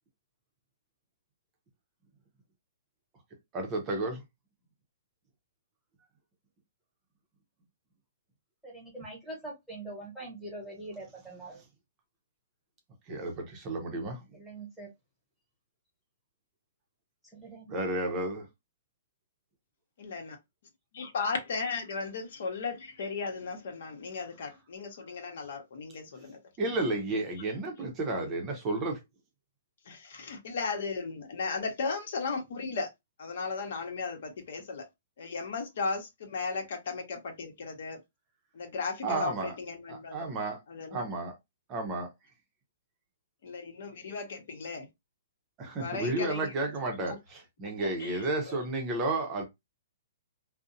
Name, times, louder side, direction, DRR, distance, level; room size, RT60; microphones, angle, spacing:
voice 1, 3.5-4.2 13.1-14.2 17.7-18.5 26.6-29.0 39.0-39.5 39.9-40.6 40.9-41.3 41.7-42.1 45.6-49.5, right 2 dB, 25° right, 0.6 m, -32 dB
voice 2, 8.6-11.6 14.3-14.9 17.2-17.7, right 2 dB, ahead, 1.2 m, -43 dB
voice 3, 20.0-20.4 20.9-26.4 29.8-32.9 33.2-34.9 35.2-38.0 38.5-40.3 40.7-41.1 43.4-44.9 45.7-46.5 47.1-47.2 47.8-48.6, left 4 dB, 65° left, 0.9 m, -36 dB
2.5 x 2.1 x 2.5 m
hypercardioid pair, 150°, 0 cm